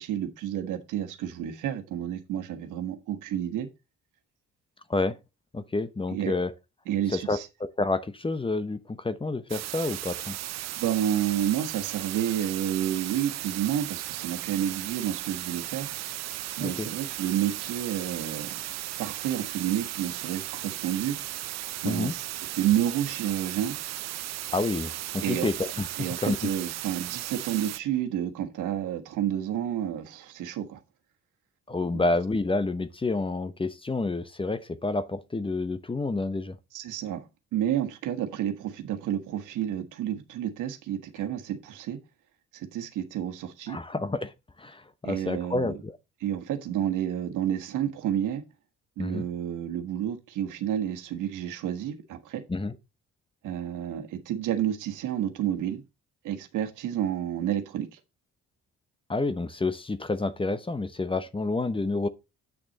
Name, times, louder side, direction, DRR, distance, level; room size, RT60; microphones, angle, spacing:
voice 1, 0.0-3.7 6.1-6.3 6.9-7.5 10.8-15.9 16.6-18.6 19.0-21.2 21.8-23.8 25.2-25.5 26.0-30.8 31.9-32.1 36.7-37.3 37.5-42.0 42.5-43.8 45.0-45.7 46.2-48.4 49.0-52.4 53.4-55.8 56.2-58.0, right 11 dB, 90° right, 1.4 m, -30 dB
voice 2, 5.5-6.5 7.1-10.4 16.6-16.9 21.8-22.1 24.5-26.4 31.7-36.6 43.7-44.3 44.6-46.0 49.0-49.3 52.5-52.7 59.1-62.1, left 3 dB, 15° left, 0.9 m, -29 dB
sound 1, 9.5-27.8, right 14 dB, 60° right, 0.5 m, -36 dB
8.6 x 6.3 x 4.1 m
cardioid pair, 90°, 30 cm